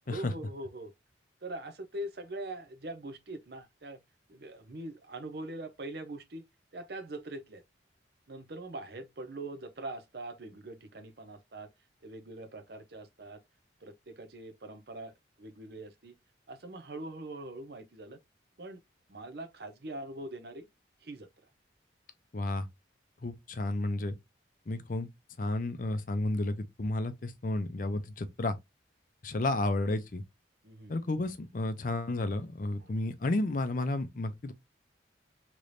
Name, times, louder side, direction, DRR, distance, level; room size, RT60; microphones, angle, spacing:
voice 1, 0.1-0.9 1.4-4.0 4.3-6.4 6.7-7.6 8.3-11.7 12.0-13.4 13.8-16.1 16.5-18.2 18.6-18.8 19.1-20.7 21.0-21.3 30.6-31.0 32.8-33.0, right 1 dB, 55° right, 0.7 m, -42 dB
voice 2, 22.3-22.7 23.2-24.1 24.7-25.1 25.4-28.5 29.2-30.2 30.9-34.5, left 2 dB, 45° left, 0.5 m, -32 dB
3.3 x 3.0 x 2.5 m
head